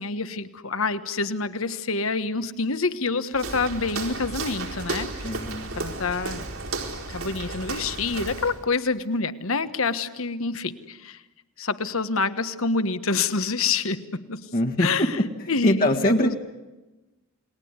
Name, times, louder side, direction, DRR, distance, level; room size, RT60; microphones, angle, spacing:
voice 1, 0.0-5.4 5.7-6.4 7.1-11.2 11.6-14.4 14.8-15.0 15.5-16.4, left 4 dB, 70° left, 11 dB, 1.4 m, -27 dB
Walk footsteps, 3.3-8.6, right 3 dB, 70° right, 4.4 m, -33 dB
voice 2, 5.2-5.7 14.5-16.3, left 1 dB, 40° left, 2 dB, 1.7 m, -23 dB
29.5 x 20.5 x 9.7 m, 1.1 s
head